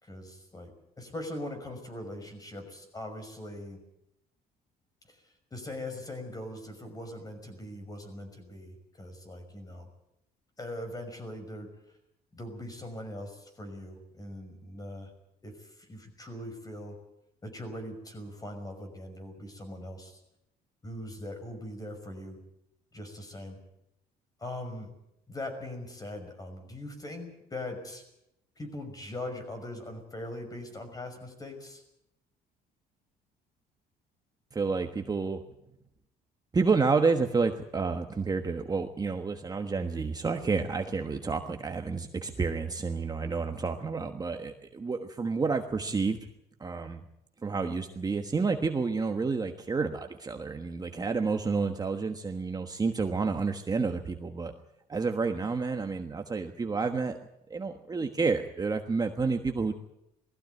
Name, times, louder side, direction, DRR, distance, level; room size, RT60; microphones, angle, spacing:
voice 1, 0.0-0.7 1.0-3.8 5.1-9.9 10.6-11.7 12.3-15.1 15.4-17.0 17.4-20.2 20.8-22.4 22.9-23.6 24.4-24.9 25.3-28.0 28.6-31.8, left 1 dB, 20° left, 6 dB, 5.8 m, -41 dB
voice 2, 34.5-35.4 36.5-46.2 46.6-47.0 47.4-54.5 54.9-57.2 57.5-59.7, right 4 dB, 20° right, 5 dB, 1.3 m, -29 dB
19.5 x 15.0 x 9.4 m, 0.84 s
cardioid pair, 110°, 17 cm